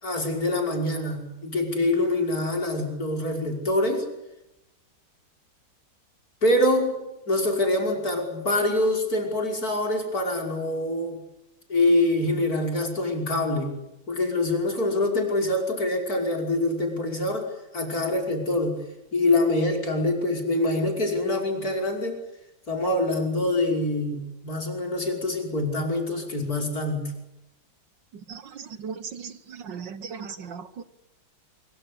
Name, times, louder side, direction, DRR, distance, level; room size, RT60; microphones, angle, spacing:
voice 1, 0.0-4.1 6.4-7.0 7.3-11.2 11.7-13.7 14.1-17.5 17.7-18.8 19.1-22.2 22.7-27.1, left 2 dB, 45° left, 2 dB, 6.0 m, -25 dB
voice 2, 28.3-30.8, right 6 dB, 65° right, 13 dB, 1.7 m, -37 dB
25.0 x 23.0 x 8.3 m, 0.90 s
omnidirectional pair, 2.2 m